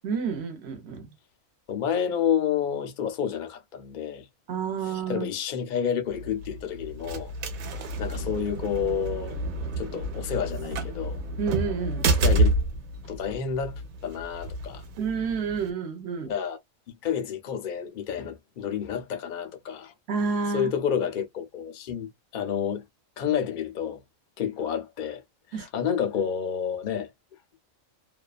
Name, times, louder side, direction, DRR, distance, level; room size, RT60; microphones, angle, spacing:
voice 1, 0.0-1.1 4.5-5.3 11.4-12.1 15.0-16.3 20.1-20.7 25.5-25.7, right 5 dB, 55° right, 1.0 m, -29 dB
voice 2, 1.7-4.3 4.8-7.3 7.8-9.4 9.8-11.2 12.2-12.5 13.0-14.8 16.2-16.6 17.0-19.9 20.5-22.8 23.2-24.0 24.4-25.2 25.6-27.1, left 8 dB, 55° left, 0.5 m, -29 dB
sound 1, 6.1-15.7, right 2 dB, 85° right, 1.1 m, -29 dB
2.6 x 2.2 x 2.3 m
omnidirectional pair, 1.4 m